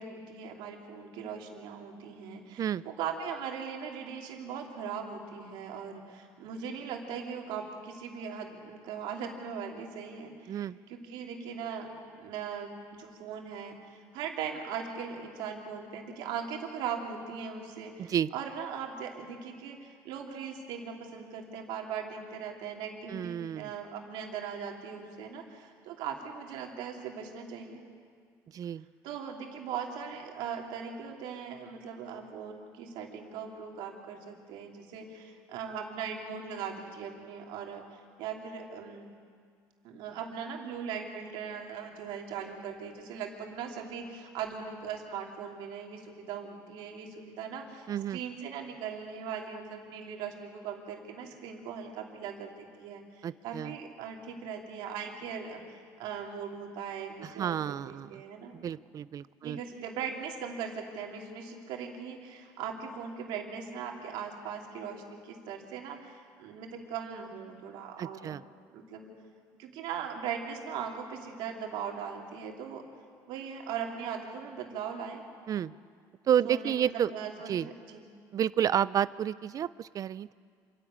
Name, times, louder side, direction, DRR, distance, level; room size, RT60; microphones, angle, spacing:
voice 1, 0.0-10.6 10.9-11.9 12.1-27.8 29.0-39.1 39.8-58.5 59.4-68.4 68.7-69.1 69.6-72.9 73.3-75.2 76.4-78.1, right 7 dB, 75° right, 1 dB, 2.9 m, -39 dB
voice 2, 10.5-10.8 18.0-18.3 23.1-23.7 28.5-28.8 47.9-48.2 53.2-53.7 57.2-58.2 58.5-59.6 68.0-68.4 75.5-75.7 76.3-77.1 77.5-77.7 78.3-80.3, right 9 dB, 45° right, 18 dB, 0.5 m, -30 dB
27.0 x 11.0 x 8.8 m, 2.1 s
supercardioid pair, 95°, 8 cm